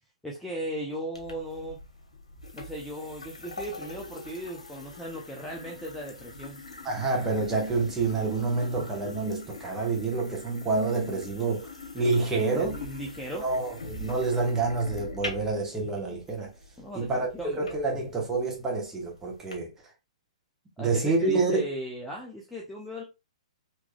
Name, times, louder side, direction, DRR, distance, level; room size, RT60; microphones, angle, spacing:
voice 1, 0.2-1.8 2.5-6.6 12.3-13.5 16.8-17.7 20.8-23.0, equal, 5° left, 0.6 m, -37 dB
sound 1, 1.1-19.5, left 2 dB, 75° left, 1.0 m, -43 dB
voice 2, 6.8-12.8 13.4-16.5 16.9-19.7 20.8-21.6, right 3 dB, 15° right, 1.1 m, -28 dB
3.7 x 2.9 x 2.3 m
figure-of-eight pair, 115°, 3 cm